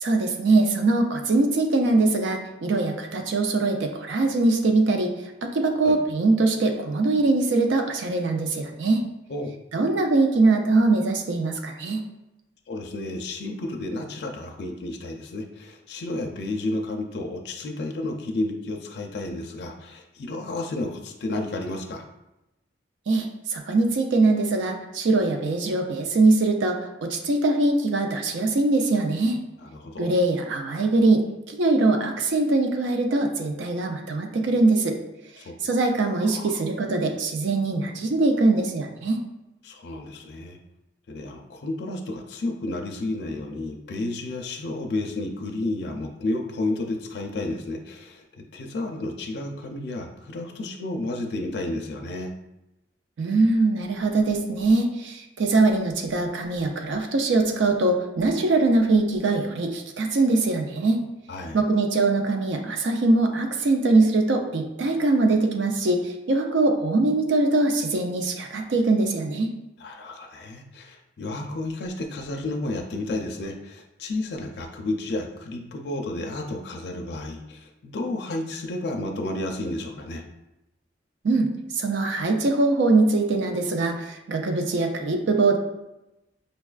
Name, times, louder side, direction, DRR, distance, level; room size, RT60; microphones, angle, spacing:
voice 1, 0.0-5.1 5.4-9.0 9.7-12.1 23.1-29.4 30.0-35.0 35.6-39.2 53.2-61.0 61.5-69.5 81.2-85.6, right 2 dB, 75° right, 4 dB, 0.4 m, -22 dB
voice 2, 12.7-22.0 29.6-30.1 35.4-35.5 36.3-36.5 39.6-40.6 41.1-48.2 48.5-52.3 61.3-61.6 69.8-80.2, left 2 dB, 60° left, 2 dB, 0.4 m, -31 dB
5.2 x 2.3 x 2.3 m, 0.95 s
head